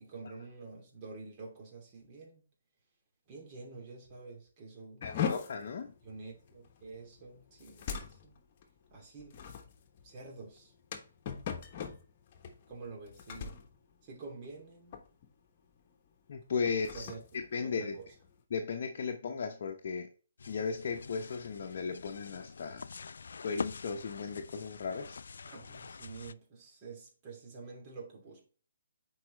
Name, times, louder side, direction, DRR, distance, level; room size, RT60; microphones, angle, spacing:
voice 1, 0.0-2.4 3.3-5.0 6.0-8.4 8.9-9.4 10.0-10.7 12.7-13.6 14.0-15.0 16.7-17.2 17.6-18.1 25.4-28.4, right 4 dB, 30° right, 2.6 m, -48 dB
voice 2, 5.0-5.9 16.3-18.0 18.5-20.1 20.5-22.9 23.4-25.2, left 5 dB, 55° left, 0.8 m, -36 dB
sound 1, 5.0-14.6 14.9-15.3 15.7-15.9 16.5-18.4, left 7 dB, 40° left, 1.2 m, -41 dB
sound 2, 20.4-26.3, left 5 dB, 70° left, 0.3 m, -44 dB
7.7 x 4.8 x 3.1 m
hypercardioid pair, 145°, 0 cm